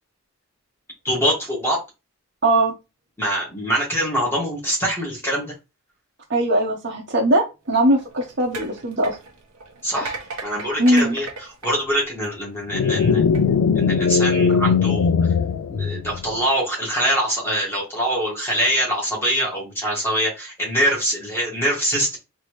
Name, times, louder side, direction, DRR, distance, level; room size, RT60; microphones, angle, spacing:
voice 1, 1.0-1.8 3.2-5.5 9.8-10.1 10.4-11.3 11.6-13.3 13.8-15.1 15.7-22.2, equal, 10° left, -4 dB, 1.9 m, -23 dB
voice 2, 2.4-2.7 6.3-9.2 10.8-11.2, right 1 dB, 50° right, -6 dB, 1.0 m, -20 dB
sound 1, 7.7-12.6 13.2-13.4, right 3 dB, 90° right, 1.0 m, -37 dB
sound 2, 12.7-16.4, left 5 dB, 75° left, 0.3 m, -19 dB
4.1 x 3.1 x 3.1 m, 0.26 s
head